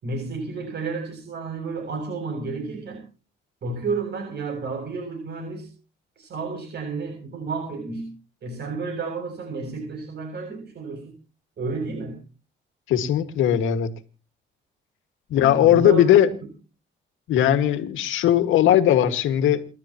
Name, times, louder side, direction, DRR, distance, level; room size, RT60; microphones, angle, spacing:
voice 1, 0.0-3.0 3.6-5.7 6.2-11.1 11.6-12.2 15.3-16.1, right 4 dB, 60° right, 7.2 m, -31 dB
voice 2, 12.9-13.9 15.3-16.3 17.3-19.7, left 11 dB, 85° left, 2.0 m, -18 dB
29.5 x 12.0 x 3.0 m
cardioid pair, 90°, 20 cm